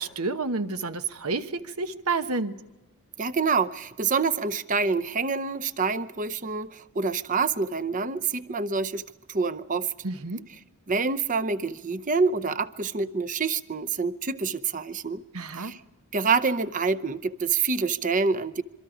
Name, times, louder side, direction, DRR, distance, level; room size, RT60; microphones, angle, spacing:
voice 1, 0.0-2.6 10.0-10.5 15.3-15.8, right 3 dB, 75° right, 1.1 m, -30 dB
voice 2, 3.2-9.9 10.9-15.2 15.6-15.8 16.1-18.6, right 4 dB, 35° right, 0.7 m, -27 dB
26.0 x 24.0 x 5.0 m
head